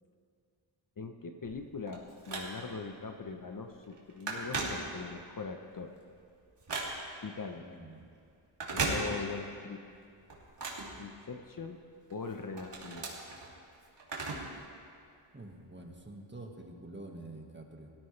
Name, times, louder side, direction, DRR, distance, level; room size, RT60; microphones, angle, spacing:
voice 1, 1.0-5.9 7.2-7.7 8.7-9.8 11.0-11.8 12.1-13.1, left 4 dB, 40° left, 5 dB, 1.0 m, -41 dB
Telephone, 1.4-2.9 3.4-3.6 3.8-5.3 5.8-7.3 8.5-9.6 9.9-11.6 12.1-14.6 14.9-15.0 15.9-16.0, right 3 dB, 55° right, 2.9 m, -38 dB
voice 2, 7.6-8.0 15.3-17.9, right 2 dB, 20° right, 1 dB, 1.7 m, -47 dB
18.0 x 14.0 x 3.3 m, 2.3 s
cardioid pair, 70°, 49 cm